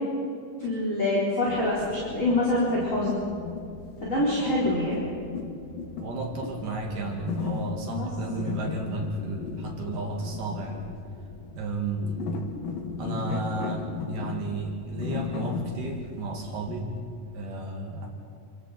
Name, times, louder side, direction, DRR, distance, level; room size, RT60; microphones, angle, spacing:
voice 1, 0.6-3.2 4.0-5.0 7.9-8.1, left 1 dB, 20° left, -7 dB, 4.5 m, -25 dB
sound 1, 1.5-17.0, left 5 dB, 75° left, 3.6 m, -37 dB
voice 2, 6.0-10.9 11.5-12.3 13.0-16.9 17.3-18.1, right 2 dB, 70° right, 0 dB, 3.6 m, -33 dB
29.0 x 26.5 x 4.3 m, 2.5 s
omnidirectional pair, 4.1 m